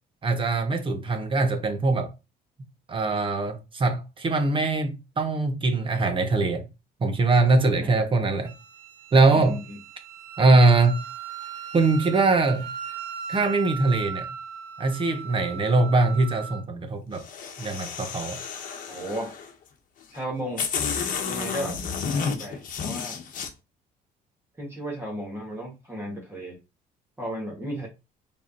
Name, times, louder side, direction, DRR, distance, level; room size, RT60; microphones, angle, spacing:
voice 1, 0.2-2.1 2.9-6.7 7.0-8.5 9.1-9.6 10.4-11.0 11.7-12.7 13.3-14.3 14.8-17.2 17.6-18.4, right 3 dB, 30° right, 1.0 m, -22 dB
Wind instrument woodwind instrument, 8.4-16.6, right 7 dB, 85° right, 0.8 m, -38 dB
voice 2, 9.3-9.8 18.9-19.3 20.1-20.7 21.2-21.8 22.1-23.2 24.6-26.6 27.2-27.9, equal, 15° right, 1.6 m, -34 dB
sound 1, 17.1-19.5 20.2-20.3 20.6-23.5, left 6 dB, 55° left, 1.1 m, -31 dB
4.7 x 3.5 x 2.9 m
cardioid pair, 110°, 17 cm